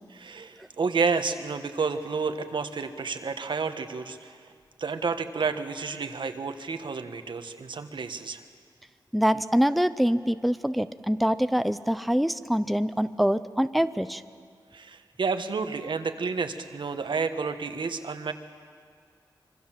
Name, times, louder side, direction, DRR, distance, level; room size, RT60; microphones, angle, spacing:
voice 1, 0.2-4.4 4.8-8.4 14.7-18.3, right 5 dB, 70° right, 8 dB, 1.4 m, -30 dB
voice 2, 9.1-14.2, equal, ahead, 12 dB, 0.5 m, -24 dB
25.5 x 24.5 x 7.5 m, 2.1 s
wide cardioid pair, 120°, 8 cm